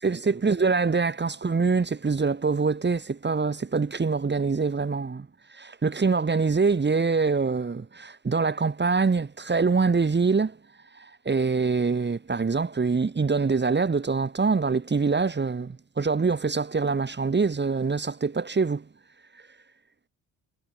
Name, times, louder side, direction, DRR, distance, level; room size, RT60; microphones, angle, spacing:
voice 1, 0.0-10.6 10.9-18.8, right 4 dB, 25° right, 2.0 m, -24 dB
cardioid pair, 95°, 44 cm